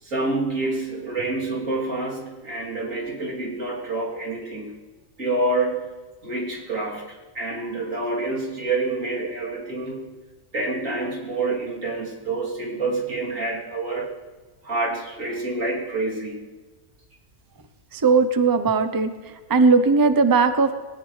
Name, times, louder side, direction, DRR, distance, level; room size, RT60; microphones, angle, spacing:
voice 1, 0.0-4.8 5.2-5.9 6.2-10.1 10.5-14.1 14.6-16.5, right 2 dB, 85° right, -3 dB, 3.6 m, -27 dB
voice 2, 18.0-19.1 19.5-20.7, right 4 dB, 20° right, 9 dB, 0.7 m, -18 dB
21.5 x 18.0 x 3.3 m, 1.4 s
omnidirectional pair, 1.3 m